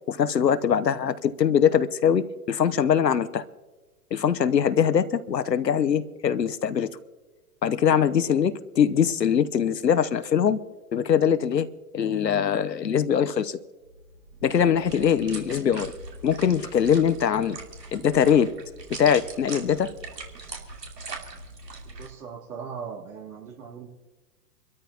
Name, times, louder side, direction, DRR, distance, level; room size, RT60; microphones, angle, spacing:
voice 1, 0.1-3.4 4.1-6.9 7.6-10.6 10.9-11.7 11.9-13.6 14.4-15.9 16.2-17.6 17.9-18.5 19.0-19.9, left 8 dB, 90° left, 14 dB, 1.0 m, -22 dB
sound 1, 13.9-22.1, right 3 dB, 85° right, 3.1 m, -41 dB
voice 2, 21.8-23.9, right 6 dB, 65° right, -3 dB, 3.4 m, -39 dB
26.5 x 13.0 x 2.9 m, 1.2 s
hypercardioid pair, 120°, 48 cm